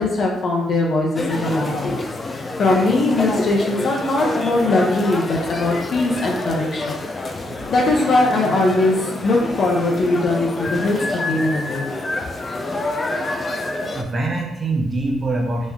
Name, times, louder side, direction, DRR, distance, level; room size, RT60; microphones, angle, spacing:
voice 1, 0.0-2.1 2.3-7.0 7.7-11.9, left 2 dB, 55° left, -2 dB, 0.9 m, -20 dB
sound 1, 1.2-14.0, left 2 dB, 30° left, 0.4 m, -27 dB
voice 2, 13.8-15.7, right 2 dB, 35° right, 0 dB, 0.7 m, -24 dB
3.2 x 2.6 x 3.6 m, 0.91 s
cardioid pair, 90°, 0 cm